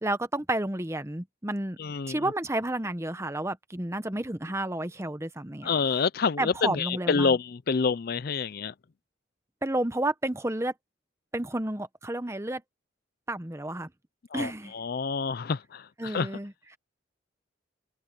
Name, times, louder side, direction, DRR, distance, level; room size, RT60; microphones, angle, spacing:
voice 1, 0.0-1.8 2.1-5.7 6.4-7.4 9.6-10.7 11.3-12.6 13.3-13.9 14.3-14.7 16.0-16.8, right 1 dB, 15° right, 1.0 m, -31 dB
voice 2, 1.8-2.2 5.6-8.7 14.3-16.3, left 5 dB, 50° left, 0.4 m, -28 dB
open air
head